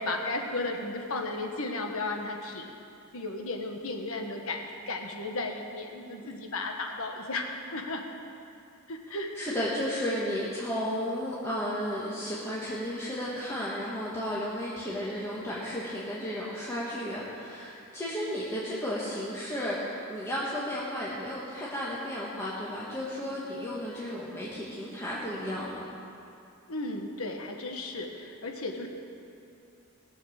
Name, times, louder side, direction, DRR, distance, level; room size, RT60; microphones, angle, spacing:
voice 1, 0.0-2.7 3.1-8.0 8.9-9.6 26.7-28.9, left 2 dB, 65° left, 3 dB, 1.4 m, -34 dB
voice 2, 9.1-25.9, equal, 10° left, -8 dB, 1.5 m, -33 dB
18.5 x 7.2 x 6.5 m, 2.6 s
head